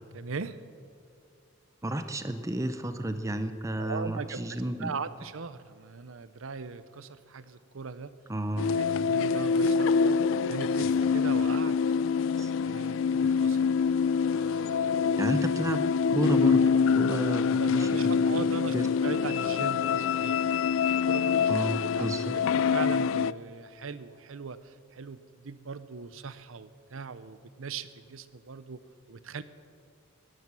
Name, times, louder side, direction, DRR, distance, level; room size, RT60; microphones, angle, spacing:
voice 1, 0.1-0.6 3.8-8.1 8.8-11.8 12.6-13.7 14.3-15.2 17.1-18.7 19.0-21.5 21.8-22.1 22.5-28.8 29.1-29.4, right 4 dB, 85° right, 14 dB, 0.7 m, -40 dB
voice 2, 1.8-4.9 8.3-8.8 12.4-12.5 13.2-13.3 15.2-15.8 16.1-18.3 18.7-18.9 21.5-22.4, right 1 dB, 15° right, 9 dB, 0.6 m, -32 dB
sound 1, 8.6-23.3, left 6 dB, 70° left, 0.3 m, -25 dB
17.0 x 10.5 x 7.5 m, 2.4 s
head